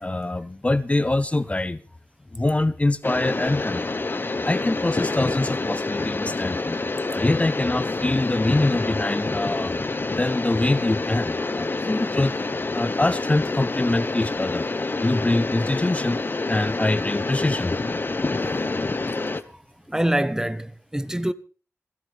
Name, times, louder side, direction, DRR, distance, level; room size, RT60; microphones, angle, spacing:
voice 1, 0.0-1.8 2.3-3.9 4.5-6.8 7.1-9.7 10.1-12.3 12.7-14.7 15.0-16.2 16.5-17.7, left 2 dB, 25° left, 0.7 m, -24 dB
sound 1, 3.0-19.4, left 3 dB, 40° left, 1.2 m, -27 dB
voice 2, 19.9-21.3, right 1 dB, 10° right, 1.0 m, -25 dB
28.0 x 13.0 x 3.5 m
wide cardioid pair, 70°, 5 cm